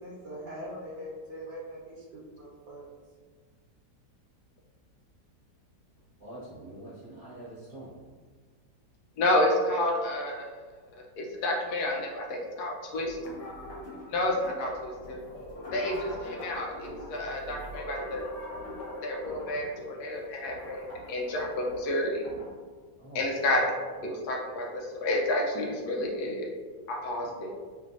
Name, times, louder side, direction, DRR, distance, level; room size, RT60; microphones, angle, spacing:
voice 1, 0.0-2.8, equal, 80° right, -8 dB, 1.4 m, -42 dB
voice 2, 6.2-8.0 23.0-23.2, right 1 dB, 35° right, -12 dB, 1.1 m, -45 dB
voice 3, 9.2-10.5 11.2-13.2 14.1-15.2 15.7-18.2 19.0-22.2 23.1-23.7 24.0-26.5 26.9-27.5, left 1 dB, 70° left, 0 dB, 1.1 m, -30 dB
sound 1, 12.9-22.5, left 1 dB, 90° left, 1.6 m, -42 dB
3.3 x 3.2 x 2.5 m, 1.5 s
omnidirectional pair, 1.8 m